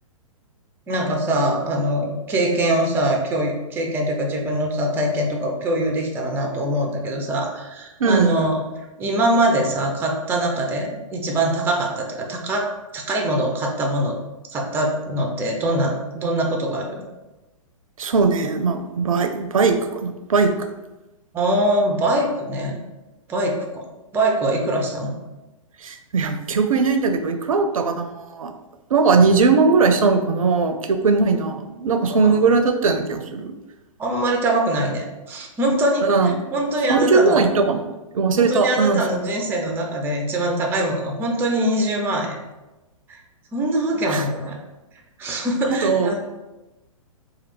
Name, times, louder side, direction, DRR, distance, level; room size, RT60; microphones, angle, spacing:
voice 1, 0.9-8.6 9.0-14.2 14.5-17.0 21.3-22.8 23.3-23.9 24.1-25.1 32.1-32.4 34.0-37.4 38.4-42.4 43.1-43.2 43.5-44.6 45.2-46.2, right 1 dB, 10° right, 2 dB, 0.4 m, -23 dB
voice 2, 8.0-8.3 18.0-20.5 25.8-28.5 28.9-33.5 36.0-36.4 36.9-37.8 38.1-39.0 44.1-44.2 45.7-46.2, right 4 dB, 75° right, 7 dB, 0.4 m, -19 dB
3.2 x 2.3 x 3.1 m, 1.1 s
figure-of-eight pair, 115°, 18 cm